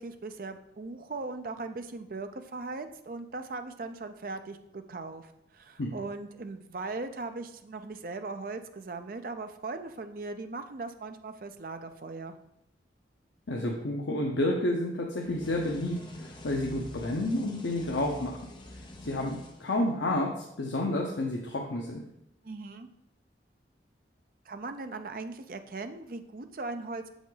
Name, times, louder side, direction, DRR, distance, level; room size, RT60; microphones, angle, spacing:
voice 1, 0.0-12.4 22.4-22.9 24.5-27.0, right 3 dB, 50° right, 8 dB, 0.5 m, -39 dB
voice 2, 13.5-18.4 19.0-22.0, left 1 dB, 80° left, 0 dB, 0.7 m, -30 dB
sound 1, 15.2-20.1, left 1 dB, 25° left, 0.8 m, -45 dB
7.0 x 5.1 x 3.9 m, 0.81 s
head